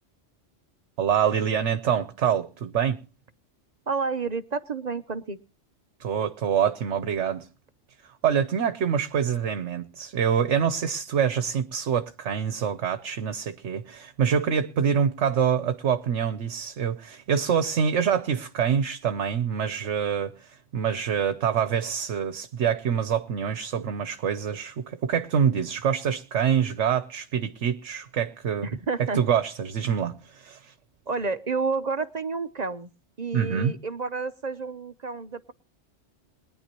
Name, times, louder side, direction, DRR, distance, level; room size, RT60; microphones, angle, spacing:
voice 1, 1.0-3.0 6.0-7.5 8.0-28.7 29.1-30.7 33.3-33.7, right 7 dB, 75° right, 1.2 m, -26 dB
voice 2, 3.9-5.4 28.6-29.2 31.1-32.9 33.2-35.5, right 4 dB, 40° right, 0.8 m, -30 dB
22.0 x 10.5 x 2.9 m
omnidirectional pair, 1.3 m